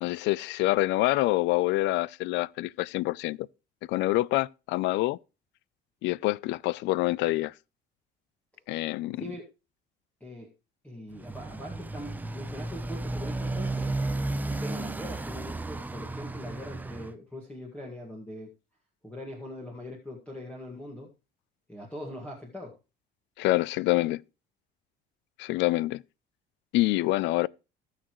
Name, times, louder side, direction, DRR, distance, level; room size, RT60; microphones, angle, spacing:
voice 1, 0.0-3.5 3.9-5.2 6.0-7.5 8.7-9.2 23.4-24.2 25.4-26.0 26.7-27.5, left 18 dB, 75° left, 0.4 m, -26 dB
voice 2, 10.8-13.9 14.5-18.5 19.0-21.1 21.7-22.7, left 1 dB, 5° left, 1.9 m, -41 dB
Motorcycle, 11.1-17.1, right 2 dB, 10° right, 0.6 m, -33 dB
18.0 x 6.6 x 3.1 m
cardioid pair, 140°, 19 cm